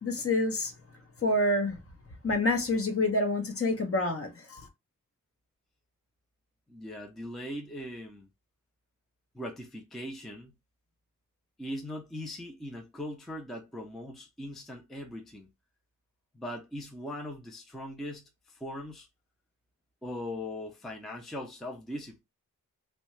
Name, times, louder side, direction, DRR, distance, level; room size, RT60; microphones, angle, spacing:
voice 1, 0.0-0.7 1.2-1.8 2.2-4.7, left 2 dB, 40° left, 0.7 m, -27 dB
voice 2, 6.7-8.3 9.3-10.6 11.6-15.5 16.3-19.1 20.0-22.2, left 1 dB, ahead, 0.4 m, -40 dB
2.7 x 2.2 x 3.0 m
wide cardioid pair, 135°, 34 cm